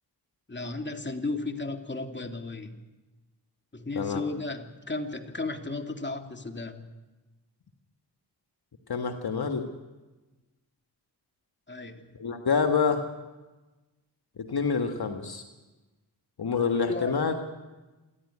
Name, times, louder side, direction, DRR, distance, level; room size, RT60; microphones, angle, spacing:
voice 1, 0.5-2.8 3.7-6.8 11.7-12.1 16.9-17.1, left 3 dB, 25° left, 5 dB, 2.5 m, -34 dB
voice 2, 8.9-9.7 12.2-13.1 14.4-15.4 16.4-17.3, left 5 dB, 60° left, 6 dB, 1.7 m, -27 dB
27.5 x 11.0 x 9.8 m, 1.1 s
cardioid pair, 45°, 42 cm